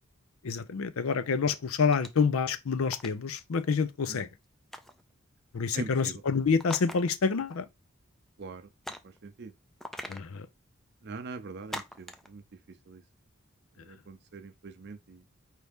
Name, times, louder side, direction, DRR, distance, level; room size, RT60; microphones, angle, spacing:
voice 1, 0.4-4.3 5.5-7.6 10.1-10.4, left 5 dB, 80° left, 0.5 m, -27 dB
sound 1, 1.9-2.3 2.8-3.2 4.7-5.0 6.6-7.3 7.6-7.7 8.8-9.2 9.8-10.3 11.7-12.3, equal, ahead, 0.3 m, -41 dB
voice 2, 5.7-6.2 8.4-8.9 9.2-9.5 11.0-12.4 12.9-13.0 13.8-15.2, right 3 dB, 50° right, 0.5 m, -42 dB
4.6 x 2.7 x 3.5 m
head